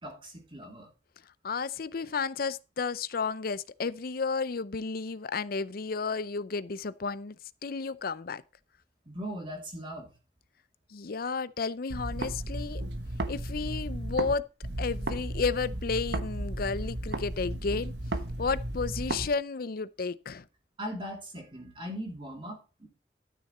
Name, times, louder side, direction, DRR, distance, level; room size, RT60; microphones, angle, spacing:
voice 1, 0.0-0.9 9.0-10.1 20.8-22.9, equal, 30° right, 2.9 m, -39 dB
voice 2, 1.4-7.4 7.6-8.4 10.9-12.8 13.3-14.4 14.8-17.9 18.4-20.5, left 4 dB, 55° left, 0.6 m, -32 dB
sound 1, 11.9-14.3 14.6-19.3, right 1 dB, 70° right, 1.2 m, -34 dB
12.5 x 6.6 x 4.2 m
head